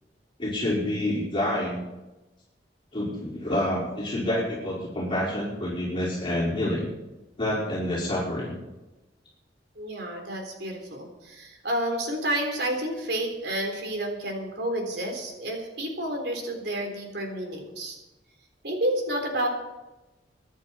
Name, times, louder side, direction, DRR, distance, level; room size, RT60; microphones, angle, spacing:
voice 1, 0.4-1.9 2.9-6.9 7.4-8.6, left 1 dB, 30° left, -7 dB, 4.8 m, -28 dB
voice 2, 9.8-18.0 18.6-19.5, right 1 dB, 65° right, 2 dB, 3.7 m, -30 dB
24.0 x 10.5 x 4.3 m, 1.0 s
head